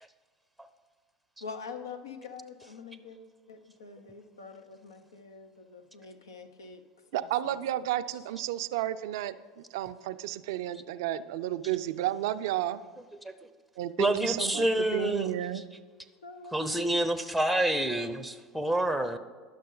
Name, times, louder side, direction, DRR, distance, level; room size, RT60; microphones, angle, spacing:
voice 1, 1.4-3.2 3.5-6.8 7.1-7.5 16.2-16.6, left 5 dB, 85° left, 7 dB, 0.7 m, -45 dB
voice 2, 7.1-12.8 13.8-15.6, right 13 dB, 70° right, 13 dB, 0.4 m, -32 dB
voice 3, 14.0-15.3 16.5-19.2, right 1 dB, ahead, 10 dB, 0.6 m, -27 dB
10.5 x 6.4 x 3.8 m, 1.5 s
hypercardioid pair, 85°, 2 cm